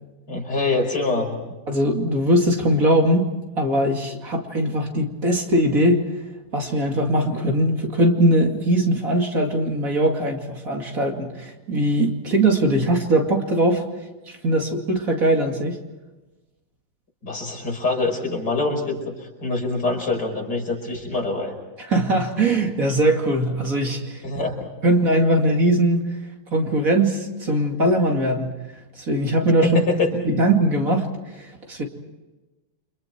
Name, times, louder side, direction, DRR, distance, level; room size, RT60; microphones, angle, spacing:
voice 1, 0.3-1.4 17.2-19.1 19.4-21.5 24.2-24.6 29.6-30.1, left 2 dB, 60° left, 1 dB, 5.7 m, -24 dB
voice 2, 1.7-3.3 3.6-6.0 6.5-13.8 14.3-15.8 21.9-24.2 24.8-26.0 26.5-28.6 29.0-29.8 30.2-31.8, right 1 dB, 45° right, 2 dB, 2.9 m, -20 dB
30.0 x 26.5 x 4.5 m, 1.1 s
omnidirectional pair, 2.0 m